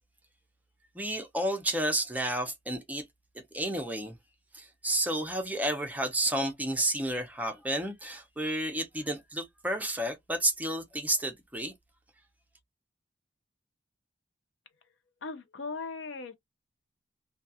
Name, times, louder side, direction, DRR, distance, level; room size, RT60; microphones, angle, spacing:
voice 1, 0.9-3.0 3.5-4.2 4.5-11.7, right 1 dB, 10° right, 0.6 m, -31 dB
voice 2, 15.2-16.3, left 4 dB, 75° left, 0.5 m, -38 dB
2.3 x 2.3 x 2.7 m
head